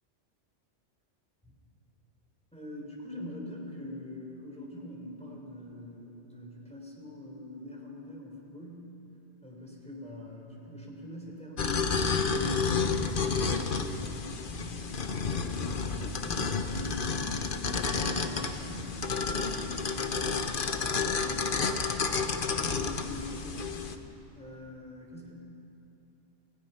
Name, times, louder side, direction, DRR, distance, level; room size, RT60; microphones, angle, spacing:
voice 1, 2.5-8.9 9.4-17.6 17.9-22.1 22.7-25.4, left 1 dB, 5° left, -2 dB, 3.8 m, -44 dB
sound 1, 11.6-24.0, left 5 dB, 50° left, 1.1 m, -30 dB
29.0 x 16.5 x 5.7 m, 2.7 s
omnidirectional pair, 1.2 m